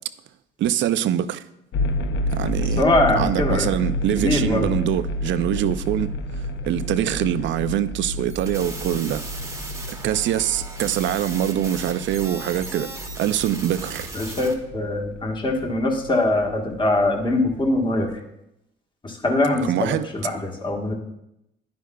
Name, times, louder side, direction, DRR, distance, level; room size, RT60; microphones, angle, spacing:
voice 1, 0.6-1.4 2.3-2.8 3.2-6.1 6.7-9.2 9.9-12.9 13.2-14.1 19.6-20.1, right 11 dB, 70° right, 0.4 m, -24 dB
sound 1, 1.7-18.0, left 1 dB, 70° left, 0.6 m, -30 dB
voice 2, 2.8-3.7 4.2-4.7 14.1-18.2 19.0-20.9, left 2 dB, 25° left, 1.3 m, -22 dB
sound 2, 8.3-14.5, right 2 dB, 15° right, 1.0 m, -37 dB
10.5 x 9.4 x 2.3 m
cardioid pair, 90°, 20 cm